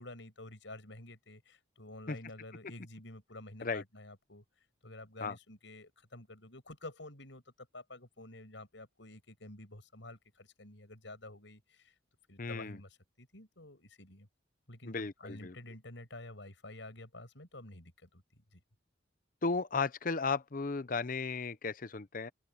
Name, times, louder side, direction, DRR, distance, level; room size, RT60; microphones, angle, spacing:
voice 1, 0.0-4.4 4.8-11.9 12.3-14.3 14.7-18.6, left 2 dB, 70° left, 6.6 m, -50 dB
voice 2, 12.4-12.8 14.8-15.5 19.4-22.3, left 4 dB, 45° left, 0.7 m, -35 dB
open air
head